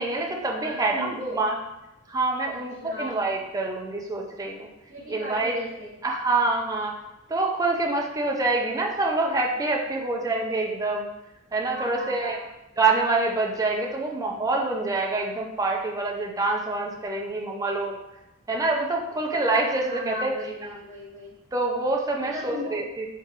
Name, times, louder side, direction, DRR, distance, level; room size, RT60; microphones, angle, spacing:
voice 1, 0.0-1.5 2.1-4.7 5.1-5.5 6.0-6.9 7.3-11.1 11.5-12.4 12.8-18.0 18.5-20.4 20.6-20.8 21.5-23.1, right 3 dB, 15° right, -1 dB, 0.6 m, -26 dB
voice 2, 0.6-1.4 2.5-3.2 4.9-6.0 11.7-12.4 19.9-21.3 22.2-22.9, equal, 35° right, -8 dB, 0.9 m, -36 dB
4.3 x 3.7 x 2.9 m, 0.93 s
head